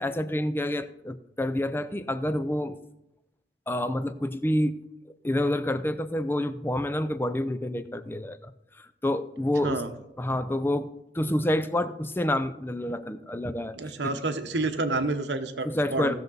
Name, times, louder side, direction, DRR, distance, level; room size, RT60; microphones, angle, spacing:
voice 1, 0.0-2.8 3.7-4.7 5.2-9.8 10.2-13.8 14.0-14.2 15.6-16.1, left 1 dB, 10° left, 12 dB, 0.4 m, -28 dB
voice 2, 13.7-16.1, right 2 dB, 85° right, 8 dB, 1.0 m, -29 dB
17.0 x 6.7 x 4.0 m, 0.86 s
head